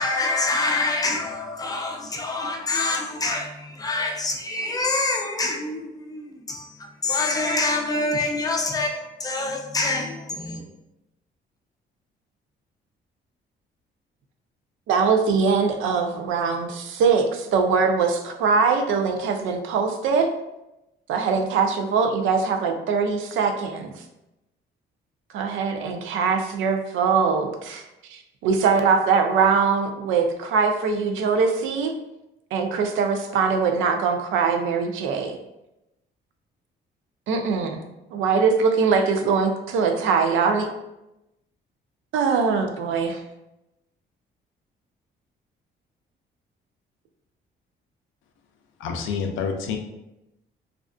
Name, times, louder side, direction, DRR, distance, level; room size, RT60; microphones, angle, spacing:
voice 1, 0.0-10.7, left 2 dB, 20° left, 2 dB, 0.4 m, -26 dB
voice 2, 14.9-20.3 21.1-23.9 25.3-27.8 28.1-31.9 32.5-35.4 37.3-37.8 38.1-40.7 42.1-43.2, right 5 dB, 85° right, 5 dB, 0.4 m, -22 dB
voice 3, 48.8-49.8, left 6 dB, 85° left, 3 dB, 0.4 m, -27 dB
2.4 x 2.3 x 2.2 m, 0.91 s
cardioid pair, 90°, 20 cm